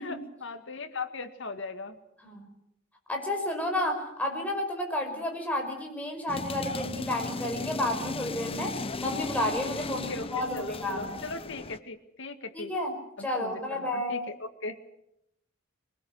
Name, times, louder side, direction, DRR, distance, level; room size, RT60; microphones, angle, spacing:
voice 1, 0.0-2.0 5.1-5.2 9.9-12.7 13.2-14.8, left 3 dB, 65° left, 7 dB, 2.1 m, -39 dB
voice 2, 3.1-8.8 9.0-11.2 12.5-12.9 13.2-14.3, left 1 dB, 5° left, 2 dB, 5.4 m, -31 dB
sound 1, 6.3-11.8, left 3 dB, 30° left, 0.9 m, -36 dB
22.5 x 20.5 x 8.1 m, 0.81 s
head